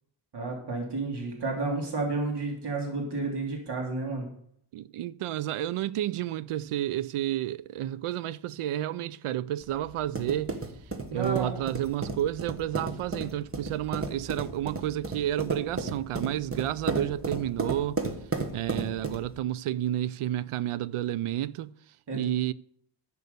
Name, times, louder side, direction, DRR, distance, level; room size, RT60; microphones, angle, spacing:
voice 1, 0.3-4.3 11.1-11.5 22.1-22.2, right 3 dB, 55° right, 2.8 m, -31 dB
voice 2, 4.7-10.6 11.1-18.0 18.5-21.7 22.1-22.5, right 12 dB, 85° right, 0.6 m, -31 dB
sound 1, 9.6-19.4, right 3 dB, 25° right, 1.3 m, -34 dB
11.0 x 6.8 x 6.8 m
wide cardioid pair, 140°, 49 cm